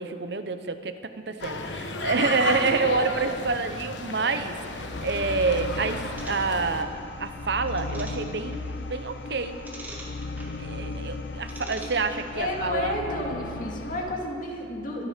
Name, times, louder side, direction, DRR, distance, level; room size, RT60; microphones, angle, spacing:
voice 1, 0.0-9.6 10.6-13.0, right 4 dB, 70° right, 9 dB, 0.9 m, -28 dB
sound 1, 1.4-6.8, left 3 dB, 90° left, 1.1 m, -33 dB
sound 2, 4.7-14.1, left 2 dB, 70° left, 0.6 m, -36 dB
sound 3, 6.2-12.6, right 2 dB, 10° right, 1.8 m, -47 dB
voice 2, 12.3-15.1, left 1 dB, 45° left, 0 dB, 2.2 m, -31 dB
24.5 x 9.3 x 5.2 m, 2.3 s
head